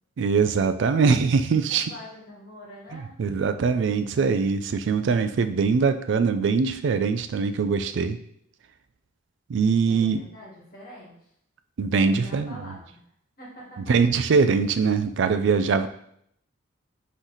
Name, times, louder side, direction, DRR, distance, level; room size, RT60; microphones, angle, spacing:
voice 1, 0.2-1.9 2.9-8.2 9.5-10.2 11.8-12.6 13.9-15.9, right 5 dB, 60° right, 10 dB, 0.3 m, -22 dB
voice 2, 1.7-3.2 9.9-11.3 12.0-13.0 13.4-14.0, equal, 45° left, -5 dB, 1.6 m, -44 dB
4.0 x 3.1 x 3.9 m, 0.70 s
head